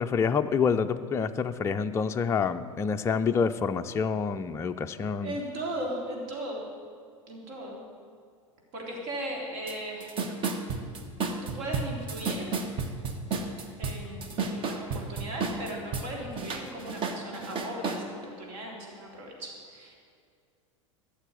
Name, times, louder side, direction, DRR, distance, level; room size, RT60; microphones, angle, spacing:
voice 1, 0.0-5.3, left 6 dB, 15° left, 7 dB, 0.4 m, -27 dB
voice 2, 5.2-6.6 7.3-7.8 8.7-10.1 11.4-12.6 13.8-19.9, right 1 dB, 50° right, -1 dB, 3.7 m, -37 dB
sound 1, 9.7-9.8 10.0-16.1 16.4-18.0, right 4 dB, 30° right, 1.4 m, -32 dB
14.5 x 7.0 x 9.3 m, 2.2 s
figure-of-eight pair, 80°, 17 cm